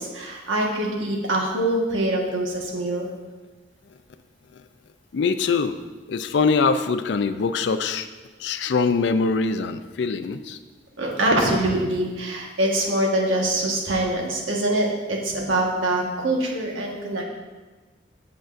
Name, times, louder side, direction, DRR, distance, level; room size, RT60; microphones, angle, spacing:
voice 1, 0.0-3.1 11.0-17.2, right 1 dB, 90° right, -1 dB, 1.4 m, -24 dB
voice 2, 5.1-5.8 6.1-8.1 8.4-10.6, left 4 dB, 65° left, 11 dB, 0.4 m, -23 dB
7.9 x 7.5 x 2.5 m, 1.3 s
head